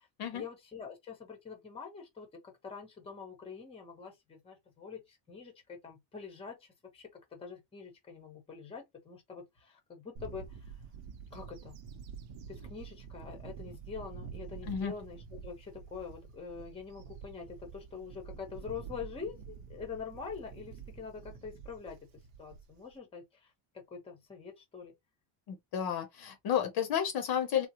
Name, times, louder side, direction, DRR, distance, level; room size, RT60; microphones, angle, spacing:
voice 1, 0.3-6.7 6.9-10.7 11.3-11.8 12.5-24.9, left 5 dB, 10° left, 0.7 m, -45 dB
Bird / Wind, 10.2-22.9, right 6 dB, 70° right, 0.8 m, -48 dB
voice 2, 25.5-27.7, left 9 dB, 50° left, 0.6 m, -32 dB
3.7 x 2.0 x 2.9 m
cardioid pair, 180°, 48 cm